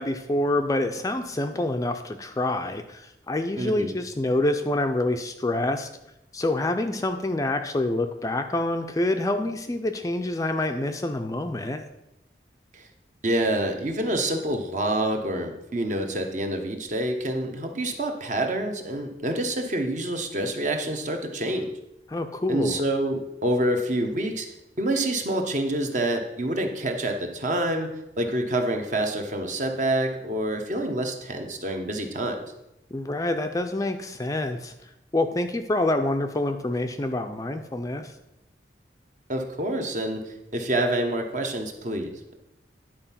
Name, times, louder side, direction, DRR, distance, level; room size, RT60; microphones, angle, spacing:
voice 1, 0.0-5.9 6.3-11.8 22.1-22.8 32.9-34.7 35.1-38.1, left 1 dB, 20° left, 6 dB, 0.4 m, -27 dB
voice 2, 3.6-3.9 12.7-12.9 13.2-21.7 22.5-24.5 24.8-27.9 28.2-32.4 39.3-42.3, right 1 dB, 45° right, 4 dB, 1.1 m, -27 dB
10.0 x 4.6 x 5.7 m, 0.87 s
head